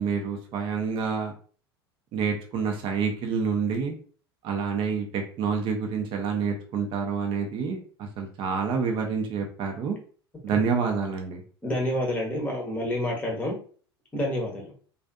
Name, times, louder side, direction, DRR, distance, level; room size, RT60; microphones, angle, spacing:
voice 1, 0.0-1.3 2.1-4.0 4.4-7.8 8.2-10.0 10.4-11.4, right 5 dB, 40° right, 3 dB, 0.6 m, -28 dB
voice 2, 11.6-13.6 14.1-14.7, left 1 dB, 10° left, 0 dB, 0.8 m, -28 dB
2.5 x 2.4 x 2.3 m, 0.42 s
figure-of-eight pair, 80°, 13 cm